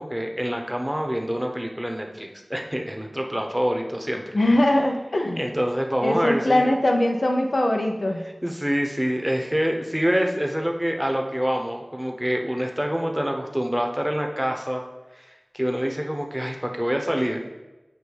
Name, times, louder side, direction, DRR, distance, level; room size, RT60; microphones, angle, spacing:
voice 1, 0.0-4.2 5.4-6.7 8.4-14.8 15.2-17.5, equal, 5° right, 2 dB, 0.9 m, -26 dB
voice 2, 4.3-5.5 6.0-8.2, left 1 dB, 80° left, 1 dB, 0.9 m, -21 dB
8.0 x 2.7 x 5.3 m, 1.1 s
wide cardioid pair, 45°, 0 cm